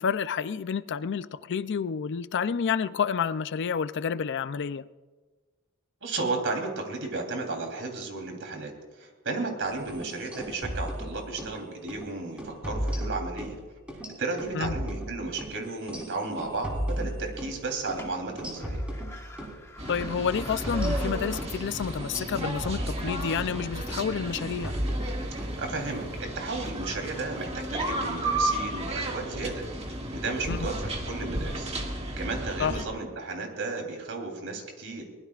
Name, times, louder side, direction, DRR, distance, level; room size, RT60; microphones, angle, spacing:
voice 1, 0.0-4.9 14.5-14.7 19.9-24.8 30.5-30.7 32.6-32.8, left 6 dB, 55° left, 0.4 m, -29 dB
voice 2, 6.0-13.5 13.9-18.8 25.3-31.7 32.2-35.0, right 3 dB, 60° right, 3.3 m, -34 dB
sound 1, 9.8-11.6 11.9-12.1 12.4-13.6 13.9-17.6 17.9-18.1 18.4-19.6 19.9-20.1 20.4-23.6 23.9-24.1 24.4-25.6, equal, 5° right, 3.8 m, -34 dB
sound 2, 16.5-22.7, left 2 dB, 15° left, 1.2 m, -48 dB
sound 3, 19.8-32.9, right 1 dB, 30° right, 1.8 m, -33 dB
22.5 x 19.5 x 2.4 m
head